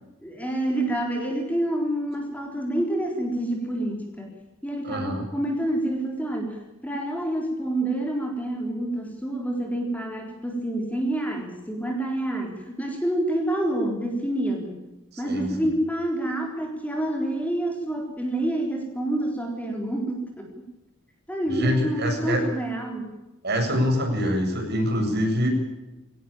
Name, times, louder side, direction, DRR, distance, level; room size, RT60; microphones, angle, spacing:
voice 1, 0.2-4.3 4.6-14.8 15.2-20.5 21.3-23.1, right 1 dB, 5° left, 2 dB, 3.9 m, -28 dB
voice 2, 4.8-5.2 15.1-15.6 21.5-22.4 23.4-25.5, equal, 50° right, 2 dB, 7.6 m, -25 dB
22.0 x 18.5 x 8.8 m, 1.0 s
head